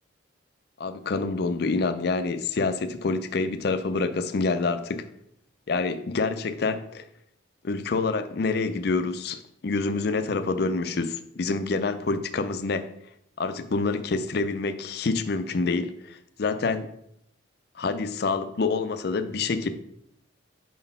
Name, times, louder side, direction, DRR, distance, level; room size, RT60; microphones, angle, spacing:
voice 1, 0.8-5.0 5.7-7.0 7.6-12.9 13.4-16.9 17.8-19.7, left 3 dB, 50° left, 10 dB, 0.4 m, -27 dB
4.6 x 4.0 x 5.4 m, 0.74 s
head